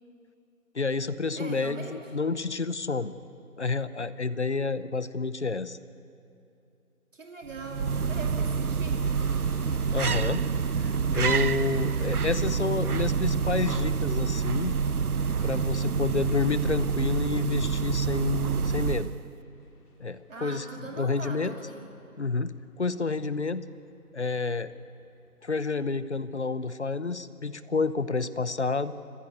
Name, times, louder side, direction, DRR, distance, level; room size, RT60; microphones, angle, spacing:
voice 1, 0.7-3.1 3.6-5.8 9.9-10.5 10.8-14.8 15.4-19.1 20.0-20.6 21.0-21.5 22.2-23.7 24.1-24.7 25.4-28.9, left 4 dB, 50° left, 15 dB, 0.9 m, -29 dB
voice 2, 1.3-2.0 7.1-9.3 15.7-16.3 20.3-21.9, right 3 dB, 55° right, 1 dB, 2.9 m, -41 dB
sound 1, 7.5-19.3, right 5 dB, 80° right, 0.9 m, -27 dB
sound 2, 9.0-26.0, left 2 dB, 85° left, 3.2 m, -52 dB
25.5 x 16.0 x 9.6 m, 2.7 s
figure-of-eight pair, 175°, 44 cm